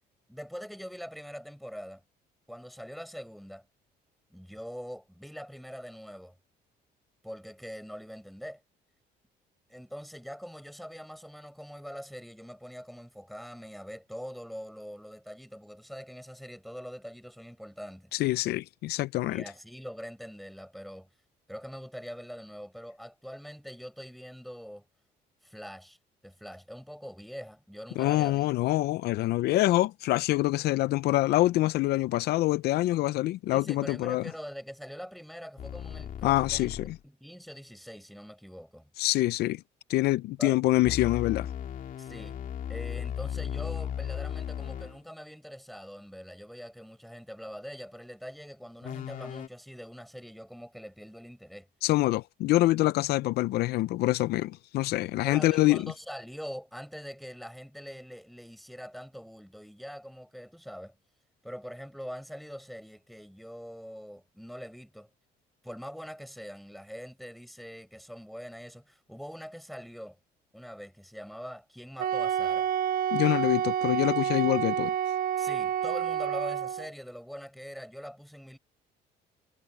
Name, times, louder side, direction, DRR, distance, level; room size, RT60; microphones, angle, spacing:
voice 1, 0.3-2.0 2.5-3.7 4.3-6.3 7.2-8.6 9.7-18.1 19.3-21.1 21.5-24.9 25.4-26.0 26.2-28.5 33.5-36.7 37.0-38.9 40.4-40.6 42.0-42.4 42.7-51.7 55.2-61.0 61.4-65.1 65.6-70.2 70.5-72.7 75.4-78.6, equal, ahead, 5.8 m, -43 dB
voice 2, 18.1-19.4 28.0-34.2 36.2-37.0 39.0-39.6 39.9-41.5 51.8-55.9 73.1-74.9, left 17 dB, 75° left, 0.5 m, -25 dB
sound 1, 35.6-37.0 40.8-45.0 48.8-49.5, left 9 dB, 55° left, 2.5 m, -36 dB
Wind instrument woodwind instrument, 72.0-76.9, right 9 dB, 55° right, 1.2 m, -29 dB
cardioid pair, 110°, 17 cm